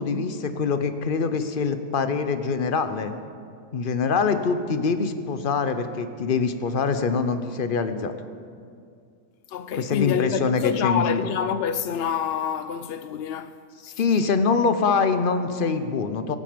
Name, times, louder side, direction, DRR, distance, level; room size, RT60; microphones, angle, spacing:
voice 1, 0.0-3.1 3.7-8.1 9.8-11.2 13.8-16.4, left 5 dB, 45° left, 0.8 m, -24 dB
voice 2, 9.5-14.0, left 8 dB, 80° left, 0.5 m, -27 dB
24.0 x 9.0 x 5.2 m
omnidirectional pair, 1.6 m